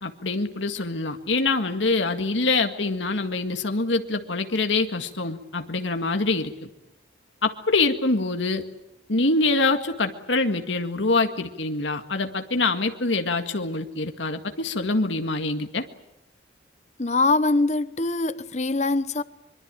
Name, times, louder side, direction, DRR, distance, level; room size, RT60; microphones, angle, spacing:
voice 1, 0.0-6.7 7.4-8.6 9.1-15.9, left 3 dB, 80° left, 1.9 m, -25 dB
voice 2, 17.0-19.2, left 3 dB, 35° left, 0.9 m, -23 dB
24.5 x 24.0 x 9.0 m
head